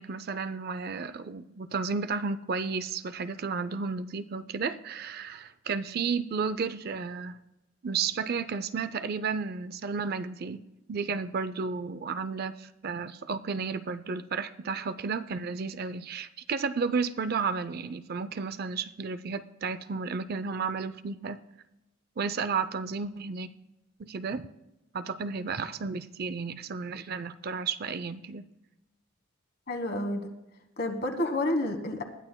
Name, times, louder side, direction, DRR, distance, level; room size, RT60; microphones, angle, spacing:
voice 1, 0.0-7.4 7.8-10.6 10.9-21.4 22.2-23.5 24.0-24.5 24.9-28.5, right 5 dB, 45° right, 12 dB, 0.4 m, -32 dB
voice 2, 29.7-30.3 30.8-32.0, left 1 dB, 45° left, 6 dB, 1.4 m, -29 dB
20.0 x 12.5 x 2.2 m, 0.95 s
head